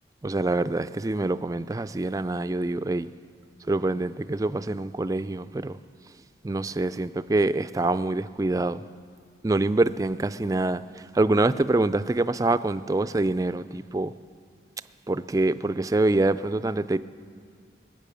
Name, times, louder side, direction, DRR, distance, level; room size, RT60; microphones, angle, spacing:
voice 1, 0.2-3.1 3.7-5.8 6.4-8.8 9.4-10.8 11.1-14.1 15.1-17.0, right 2 dB, 20° right, 0.3 m, -25 dB
23.0 x 9.1 x 6.9 m
head